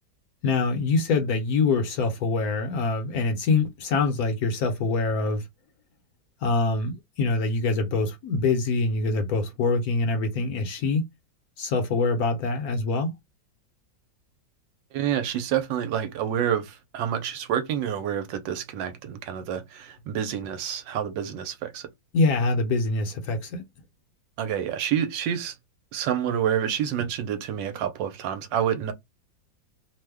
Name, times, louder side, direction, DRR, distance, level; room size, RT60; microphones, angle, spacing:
voice 1, 0.4-5.4 6.4-11.0 11.6-13.1 22.1-23.6, left 3 dB, 65° left, 1.0 m, -24 dB
voice 2, 14.9-21.9 24.4-25.6 25.9-28.9, right 9 dB, 85° right, 1.3 m, -28 dB
3.0 x 2.1 x 3.4 m
omnidirectional pair, 2.0 m